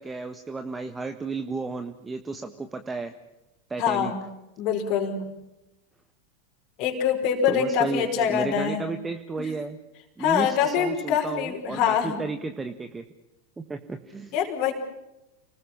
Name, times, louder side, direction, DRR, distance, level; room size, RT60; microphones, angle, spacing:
voice 1, 0.0-3.1 3.7-4.1 7.5-9.8 10.2-13.0 13.6-14.3, right 3 dB, 10° right, 7 dB, 1.5 m, -33 dB
voice 2, 3.8-4.2 4.6-5.2 6.8-8.8 9.4-9.5 10.2-12.2 14.3-14.7, left 8 dB, 40° left, 2 dB, 5.1 m, -24 dB
30.0 x 20.5 x 6.0 m, 0.93 s
figure-of-eight pair, 90°, 0 cm